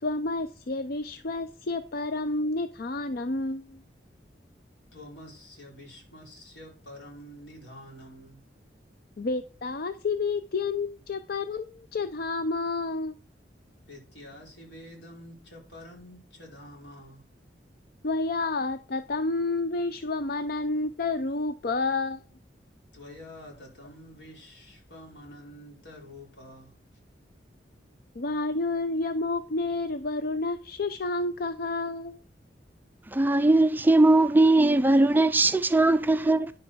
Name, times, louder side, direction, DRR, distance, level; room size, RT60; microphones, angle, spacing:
voice 1, 0.0-3.8 9.2-13.2 18.0-22.2 28.2-32.2, left 3 dB, 55° left, 0.5 m, -30 dB
voice 2, 4.9-8.4 13.8-17.3 22.9-26.7, left 1 dB, 85° left, 4.7 m, -47 dB
voice 3, 33.1-36.5, right 2 dB, 10° right, 0.4 m, -20 dB
10.5 x 5.6 x 6.1 m
head